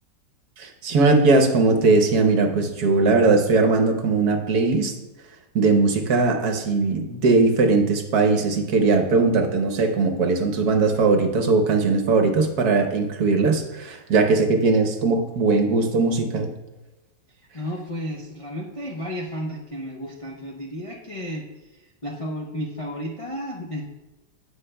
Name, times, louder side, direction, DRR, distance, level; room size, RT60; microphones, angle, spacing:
voice 1, 0.6-4.9 5.5-16.5, right 3 dB, 65° right, 5 dB, 1.3 m, -19 dB
voice 2, 17.5-21.5 21.7-23.8, equal, 60° left, -2 dB, 0.3 m, -32 dB
16.0 x 5.5 x 2.2 m, 1.0 s
omnidirectional pair, 1.9 m